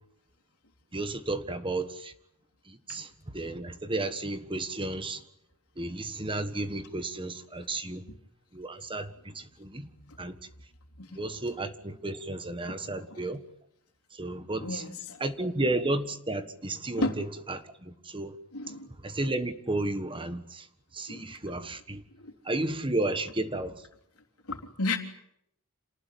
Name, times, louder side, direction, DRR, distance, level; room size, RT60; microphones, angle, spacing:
voice 1, 0.9-2.1 2.7-5.2 5.8-8.0 8.5-9.9 10.2-10.4 11.1-13.4 14.1-14.8 15.2-18.4 18.7-18.8 19.0-20.7 20.9-22.0 22.4-23.9, right 2 dB, 25° right, 1.5 m, -33 dB
voice 2, 14.6-15.2 17.0-17.2 18.5-18.9 21.1-21.3 22.2-22.3 24.5-25.0, left 2 dB, 80° left, 3.5 m, -33 dB
28.0 x 19.5 x 9.4 m
head